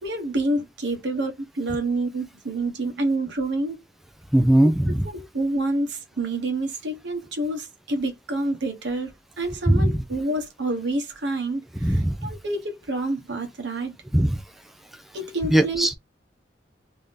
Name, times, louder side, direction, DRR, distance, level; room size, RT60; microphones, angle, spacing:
voice 1, 0.0-3.9 5.1-9.1 9.4-14.0 15.1-15.9, right 2 dB, 75° right, 1.1 m, -28 dB
voice 2, 4.3-5.1 9.7-10.0 11.8-12.3 14.1-14.4 15.5-15.9, right 1 dB, ahead, 0.4 m, -19 dB
3.5 x 2.7 x 3.5 m
head